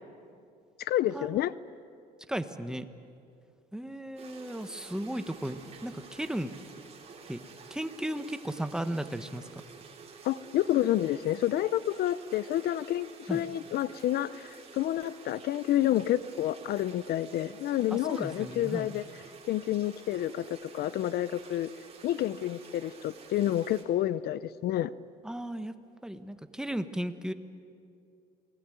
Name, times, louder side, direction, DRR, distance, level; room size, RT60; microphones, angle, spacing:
voice 1, 0.8-1.5 10.2-19.0 19.5-21.7 22.0-24.9, left 12 dB, 70° left, 18 dB, 0.6 m, -29 dB
voice 2, 2.3-2.9 3.7-6.5 7.3-7.4 7.7-9.4 13.3-13.4 17.9-18.9 25.2-25.8 26.0-27.3, right 1 dB, 5° right, 9 dB, 1.3 m, -35 dB
sound 1, 4.2-23.8, right 5 dB, 35° right, 4.1 m, -50 dB
28.0 x 20.5 x 9.3 m, 2.4 s
cardioid pair, 110°, 17 cm